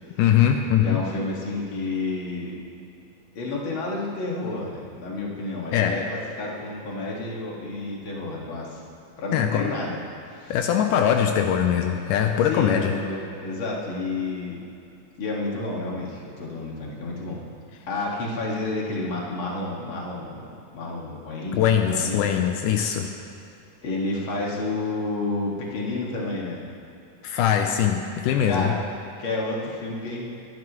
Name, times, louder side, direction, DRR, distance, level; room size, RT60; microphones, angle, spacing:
voice 1, 0.2-1.0 5.7-6.0 9.3-9.7 10.5-12.9 21.5-23.1 27.2-28.7, left 9 dB, 85° left, 4 dB, 2.2 m, -21 dB
voice 2, 0.8-2.5 3.4-8.8 9.2-10.0 10.3-10.6 12.4-14.6 15.2-17.4 17.9-20.5 20.7-22.3 23.8-26.6 28.4-28.8 29.2-30.3, left 2 dB, 45° left, -3 dB, 2.4 m, -30 dB
23.5 x 11.0 x 3.1 m, 2.7 s
omnidirectional pair, 3.7 m